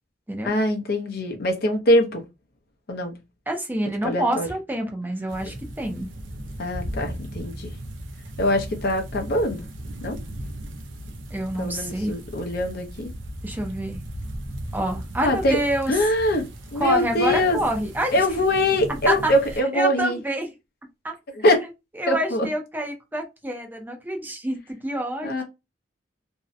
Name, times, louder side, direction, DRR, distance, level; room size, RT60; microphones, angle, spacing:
voice 1, 0.4-2.2 2.9-3.2 4.0-4.5 5.4-5.5 6.6-7.7 8.4-9.7 10.0-10.2 11.6-13.1 15.2-15.6 15.9-16.5 16.7-17.6 18.1-20.2 21.4-21.6 22.1-22.5 25.2-25.4, left 1 dB, 55° left, 0.6 m, -23 dB
voice 2, 3.5-6.1 11.3-12.1 13.4-14.0 14.7-15.9 16.8-18.1 19.1-19.3 19.7-20.5 21.0-21.1 21.6-21.7 21.9-25.4, right 1 dB, 10° right, 0.5 m, -27 dB
sound 1, 5.3-19.6, right 1 dB, 85° right, 0.5 m, -37 dB
2.6 x 2.1 x 2.5 m
head